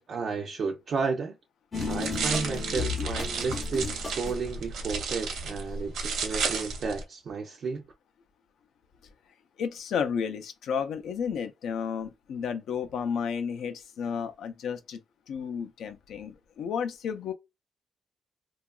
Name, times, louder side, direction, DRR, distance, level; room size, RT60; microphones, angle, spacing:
voice 1, 0.0-1.4 1.9-7.8, right 4 dB, 45° right, 0.4 m, -32 dB
sound 1, 1.7-4.5, left 5 dB, 25° left, 0.5 m, -34 dB
sound 2, 1.7-7.0, right 4 dB, 85° right, 0.8 m, -33 dB
voice 2, 9.6-15.0 15.3-17.3, left 7 dB, 70° left, 0.4 m, -32 dB
2.8 x 2.3 x 2.2 m
cardioid pair, 175°, 0 cm